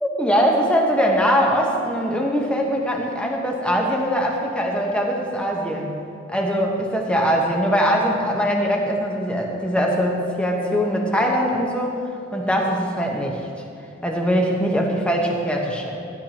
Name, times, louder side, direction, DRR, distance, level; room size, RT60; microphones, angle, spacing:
voice 1, 0.0-6.0 6.3-12.0 12.3-13.4 14.0-16.0, equal, 5° left, 0 dB, 1.0 m, -22 dB
14.5 x 10.5 x 2.9 m, 2.5 s
head